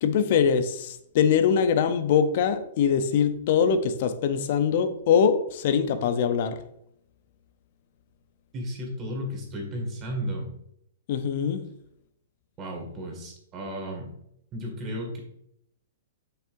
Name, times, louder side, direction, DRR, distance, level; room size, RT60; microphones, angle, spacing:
voice 1, 0.0-6.6 11.1-11.6, left 7 dB, 55° left, 10 dB, 0.7 m, -23 dB
voice 2, 8.5-10.5 12.6-14.1 14.5-15.2, equal, 25° right, 1 dB, 2.0 m, -34 dB
7.2 x 5.7 x 2.6 m, 0.76 s
hypercardioid pair, 140°, 0 cm